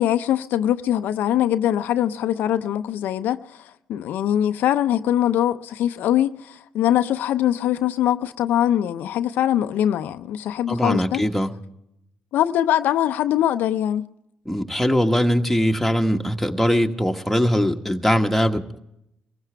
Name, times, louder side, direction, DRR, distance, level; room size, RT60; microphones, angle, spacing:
voice 1, 0.0-11.2 12.3-14.1, left 11 dB, 75° left, 0.5 m, -22 dB
voice 2, 10.7-11.5 14.4-18.8, equal, ahead, 1.5 m, -21 dB
22.5 x 15.5 x 3.4 m
supercardioid pair, 65°, 3 cm